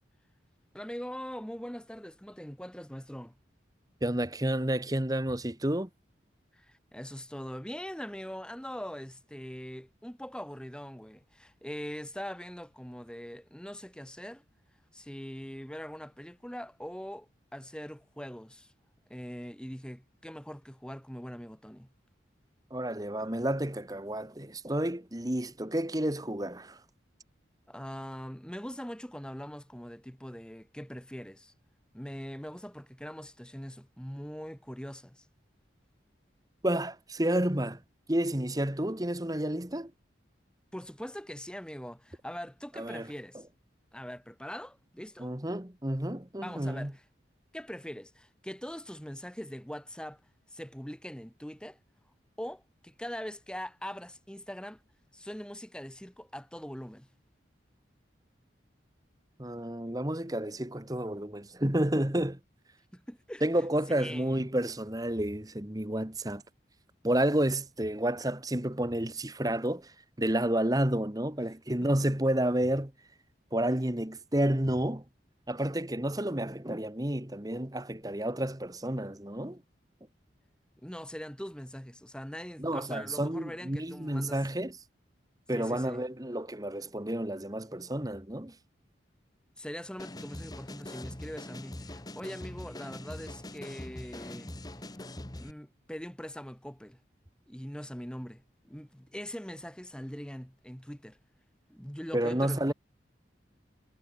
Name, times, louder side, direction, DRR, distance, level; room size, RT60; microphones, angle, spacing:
voice 1, 0.7-3.4 6.5-14.4 14.9-18.7 19.1-21.9 27.7-31.5 31.9-35.3 40.7-43.4 43.9-45.3 46.4-47.0 47.5-50.2 50.5-51.8 52.4-54.8 55.1-57.1 62.9-63.4 64.0-64.5 71.8-71.9 80.8-84.4 85.5-86.0 89.6-94.5 95.3-97.0 97.5-101.2 101.7-102.7, equal, 5° left, 1.8 m, -42 dB
voice 2, 4.0-5.9 22.7-26.8 36.6-37.8 38.1-39.9 42.8-43.1 45.2-46.9 59.4-62.4 63.4-66.4 67.0-72.9 73.5-75.0 75.5-79.6 82.6-84.8 85.5-88.6 102.1-102.7, right 1 dB, 20° right, 1.5 m, -30 dB
sound 1, 90.0-95.5, left 1 dB, 20° left, 1.3 m, -43 dB
head